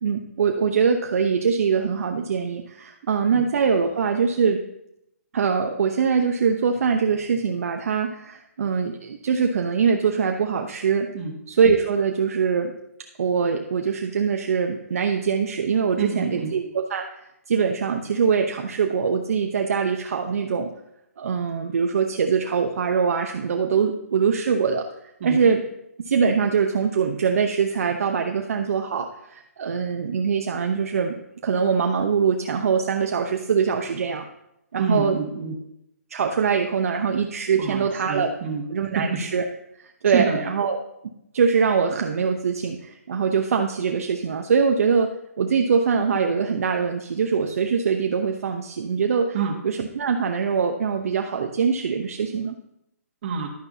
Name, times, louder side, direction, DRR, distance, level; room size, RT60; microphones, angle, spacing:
voice 1, 0.0-4.6 5.3-11.1 11.5-12.7 13.2-17.0 17.5-20.7 21.2-25.6 26.0-31.1 31.4-34.3 34.7-35.2 36.1-38.3 38.7-39.4 39.8-40.8 41.3-45.1 45.4-49.4 49.6-52.6, right 6 dB, 60° right, 4 dB, 0.9 m, -23 dB
voice 2, 16.0-16.5 25.2-25.4 34.8-35.6 37.6-38.6 38.9-39.0 40.1-40.4 49.3-49.5 53.2-53.5, right 5 dB, 40° right, 2 dB, 2.0 m, -27 dB
11.5 x 9.6 x 2.8 m, 0.81 s
hypercardioid pair, 150°, 9 cm